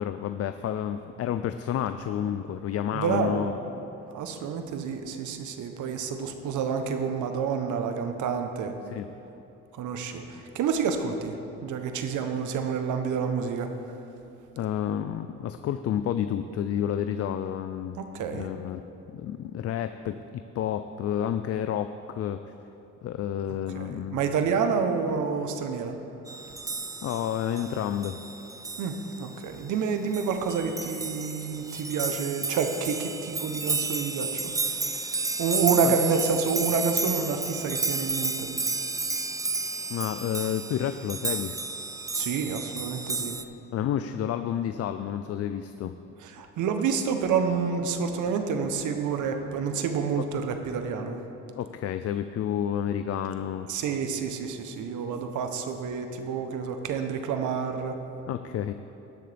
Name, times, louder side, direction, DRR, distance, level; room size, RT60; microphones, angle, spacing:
voice 1, 0.0-3.5 8.9-9.1 14.6-18.0 18.3-18.8 19.1-22.4 23.0-24.2 27.0-28.2 34.9-35.3 35.8-36.0 39.9-41.6 43.7-45.9 50.2-50.3 51.6-53.7 58.3-58.7, left 10 dB, 55° left, 10 dB, 0.4 m, -30 dB
voice 2, 2.9-3.5 4.1-8.8 9.7-13.7 18.0-18.5 23.7-26.0 28.8-34.9 35.4-38.5 42.1-43.4 46.2-51.2 53.7-58.0, right 6 dB, 80° right, 6 dB, 0.9 m, -29 dB
sound 1, 26.3-43.4, right 3 dB, 10° right, 0.3 m, -32 dB
18.0 x 6.7 x 3.4 m, 2.8 s
cardioid pair, 90°, 30 cm